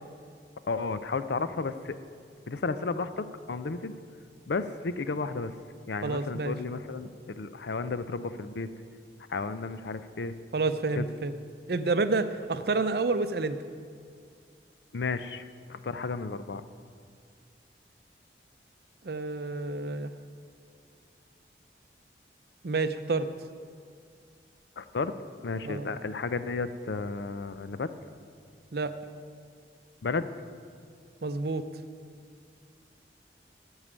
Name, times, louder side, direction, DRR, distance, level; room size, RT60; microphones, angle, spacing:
voice 1, 0.7-1.7 2.5-3.9 4.5-5.5 5.9-8.7 9.3-10.3 11.0-11.1 14.9-16.6 24.8-25.1 25.4-27.9 30.0-30.3, left 4 dB, 80° left, 12 dB, 0.5 m, -33 dB
voice 2, 6.0-6.5 10.5-11.4 11.7-13.6 19.0-20.1 22.6-23.3 25.6-26.0 28.7-28.9 31.2-31.6, right 3 dB, 60° right, 11 dB, 0.6 m, -29 dB
13.5 x 4.8 x 8.8 m, 2.2 s
head